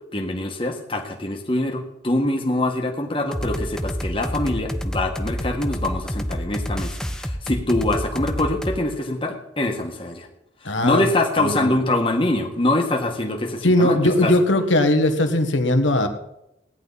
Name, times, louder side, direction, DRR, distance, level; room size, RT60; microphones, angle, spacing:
voice 1, 0.1-10.3 10.6-14.3, left 1 dB, 30° left, 2 dB, 1.7 m, -24 dB
sound 1, 3.3-8.8, equal, 5° left, 0.6 m, -28 dB
voice 2, 10.6-11.0 11.4-11.7 13.6-16.1, left 1 dB, 80° left, 6 dB, 1.6 m, -19 dB
17.5 x 10.5 x 4.1 m, 0.85 s
head